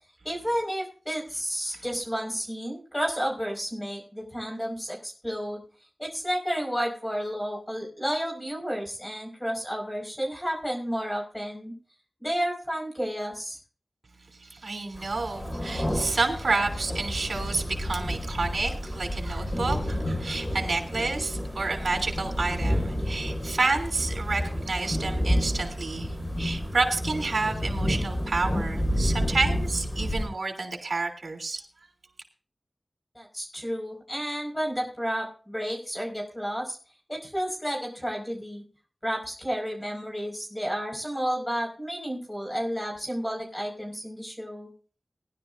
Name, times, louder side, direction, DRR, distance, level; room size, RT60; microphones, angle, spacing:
voice 1, 0.2-5.6 6.0-11.7 12.2-13.6 33.2-36.8 37.1-38.6 39.0-44.7, equal, 15° left, 0 dB, 5.4 m, -31 dB
voice 2, 14.4-31.6, right 3 dB, 75° right, 4 dB, 3.2 m, -29 dB
sound 1, 14.9-30.3, equal, 30° left, 5.5 m, -30 dB
20.0 x 11.5 x 2.7 m, 0.39 s
wide cardioid pair, 85°, 0 cm